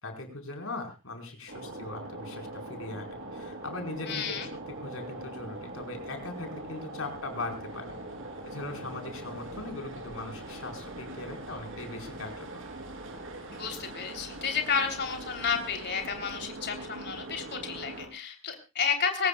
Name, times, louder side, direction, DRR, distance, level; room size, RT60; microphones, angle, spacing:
voice 1, 0.0-4.4 4.7-7.9 8.5-12.6, left 2 dB, 75° left, 3 dB, 4.7 m, -40 dB
sound 1, 1.5-18.1, right 2 dB, 65° right, 3.4 m, -42 dB
voice 2, 4.0-4.5 13.5-19.3, left 6 dB, 55° left, 4 dB, 3.3 m, -31 dB
22.5 x 18.5 x 2.3 m, 0.29 s
head